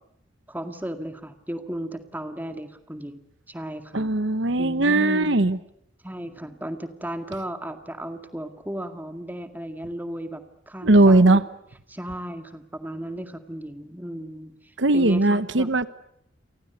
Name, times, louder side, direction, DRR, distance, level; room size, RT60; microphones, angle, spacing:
voice 1, 0.5-4.2 4.6-5.5 6.0-11.4 11.9-15.7, right 1 dB, 10° right, 7 dB, 2.0 m, -35 dB
voice 2, 3.9-5.6 10.8-11.4 14.8-15.9, right 2 dB, 70° right, 13 dB, 1.1 m, -18 dB
30.0 x 24.0 x 8.0 m, 0.75 s
head